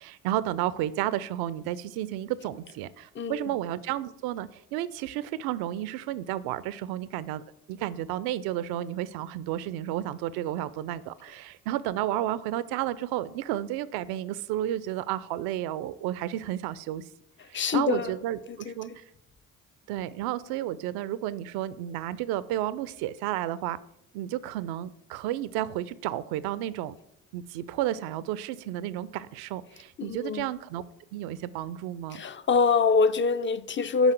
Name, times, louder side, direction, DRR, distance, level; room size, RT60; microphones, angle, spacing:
voice 1, 0.0-7.4 7.7-17.0 17.5-18.9 19.9-23.8 24.1-27.0 27.3-30.8 31.1-32.2, right 13 dB, 70° right, 0.5 m, -32 dB
voice 2, 3.1-3.6 17.4-18.2 18.5-19.0 30.0-30.5 32.1-34.1, left 5 dB, 30° left, 0.6 m, -25 dB
6.1 x 5.3 x 6.5 m
hypercardioid pair, 45°, 39 cm